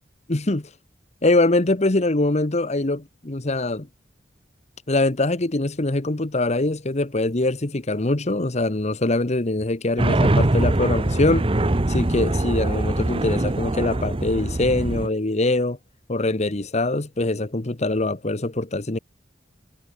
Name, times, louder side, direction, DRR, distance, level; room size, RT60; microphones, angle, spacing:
voice 1, 0.3-0.7 1.2-3.9 4.9-11.5 11.9-15.8 16.1-19.0, left 2 dB, 40° left, 1.2 m, -23 dB
sound 1, 10.0-15.1, right 1 dB, 30° right, 0.9 m, -22 dB
head